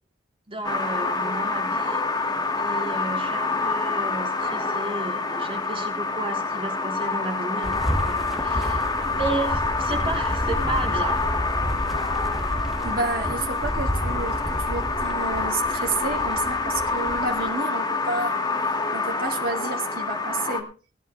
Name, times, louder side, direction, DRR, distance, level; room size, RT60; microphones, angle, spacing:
voice 1, 0.5-2.0 2.6-8.9 9.1-11.2, right 2 dB, 30° right, 1 dB, 3.9 m, -33 dB
sound 1, 0.6-20.6, left 3 dB, 20° left, 2.2 m, -27 dB
sound 2, 7.6-17.5, equal, ahead, 2.0 m, -31 dB
voice 2, 12.8-18.4 18.9-20.7, right 3 dB, 50° right, 1 dB, 2.1 m, -30 dB
19.0 x 11.0 x 3.4 m, 0.35 s
head